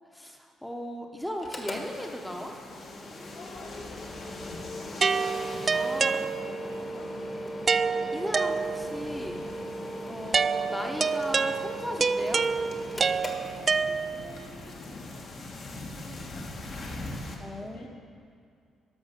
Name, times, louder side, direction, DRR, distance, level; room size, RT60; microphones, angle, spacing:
voice 1, 0.1-2.5 5.7-6.2 6.9-7.1 8.1-9.4 10.1-12.4 17.4-17.9, equal, 5° left, 2 dB, 0.9 m, -36 dB
Mechanical fan, 1.3-14.1, equal, 30° left, 1.4 m, -39 dB
sound 1, 1.7-17.4, left 2 dB, 60° left, 1.6 m, -44 dB
voice 2, 3.3-4.5 5.9-7.5 10.0-10.2 13.5-17.1 17.6-17.9, left 2 dB, 75° left, -2 dB, 2.2 m, -50 dB
sound 2, 5.0-6.8 7.7-9.1 10.3-14.4, right 5 dB, 40° right, 0.3 m, -27 dB
11.5 x 5.9 x 6.6 m, 2.3 s
cardioid pair, 90°, 0 cm